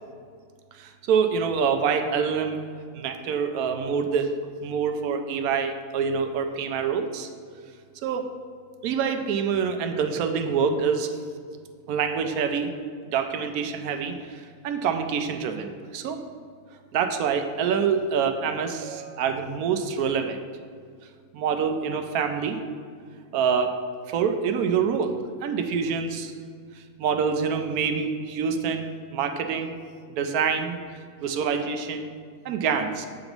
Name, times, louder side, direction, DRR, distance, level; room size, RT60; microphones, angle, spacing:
voice 1, 0.7-2.6 2.9-4.3 4.6-7.3 8.0-8.3 8.8-11.2 11.9-12.7 13.0-16.2 16.9-20.4 21.3-22.6 23.3-23.7 24.1-25.2 25.4-26.3 26.7-29.7 30.2-30.8 31.2-32.1 32.4-33.1, right 6 dB, 85° right, 6 dB, 1.1 m, -26 dB
7.8 x 3.0 x 5.2 m, 2.1 s
omnidirectional pair, 1.5 m